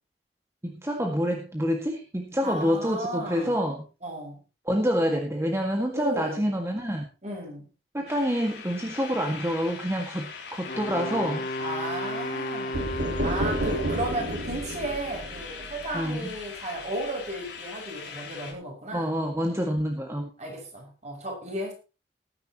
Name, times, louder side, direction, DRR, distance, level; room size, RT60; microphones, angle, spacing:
voice 1, 0.6-3.8 4.7-7.0 7.9-11.5 15.9-16.4 18.9-20.3, equal, 15° right, 2 dB, 1.9 m, -27 dB
voice 2, 2.4-3.5 4.0-4.4 5.9-6.4 7.2-7.7 11.1-11.3 11.6-19.2 20.4-21.7, right 1 dB, 40° right, 0 dB, 6.5 m, -34 dB
sound 1, 8.1-18.5, left 5 dB, 80° left, 3.8 m, -41 dB
Wind instrument woodwind instrument, 10.7-14.4, left 1 dB, 55° left, 2.3 m, -33 dB
sound 2, 12.7-16.5, right 1 dB, 75° right, 2.8 m, -31 dB
19.5 x 10.5 x 3.0 m, 0.31 s
head